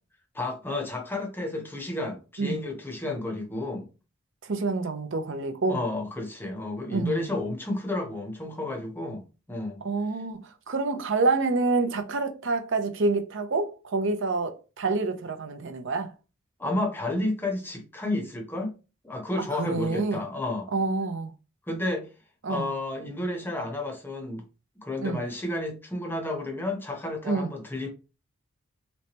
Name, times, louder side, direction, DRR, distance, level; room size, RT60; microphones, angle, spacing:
voice 1, 0.3-3.9 5.7-9.8 16.6-18.8 19.0-20.7 21.7-22.1 22.5-24.4 24.8-27.9, left 2 dB, 10° left, 0.7 m, -31 dB
voice 2, 4.5-5.8 6.9-7.3 9.8-16.1 19.5-20.2 20.7-21.3 22.4-22.7 25.0-25.2 27.2-27.5, right 3 dB, 65° right, 0.6 m, -27 dB
3.2 x 3.1 x 2.9 m
head